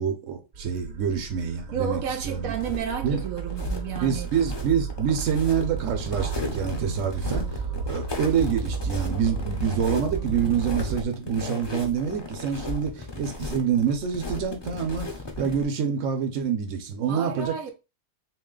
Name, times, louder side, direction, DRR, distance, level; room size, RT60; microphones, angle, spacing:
voice 1, 0.0-2.5 3.0-3.2 4.0-15.1 15.4-17.5, right 7 dB, 70° right, 1.1 m, -27 dB
sound 1, 0.5-11.0, right 5 dB, 45° right, 0.9 m, -33 dB
voice 2, 1.7-4.3 15.4-15.6 17.1-17.7, right 7 dB, 90° right, 1.1 m, -32 dB
sound 2, 2.5-15.6, left 3 dB, 30° left, 0.5 m, -36 dB
3.2 x 2.9 x 3.7 m
omnidirectional pair, 1.4 m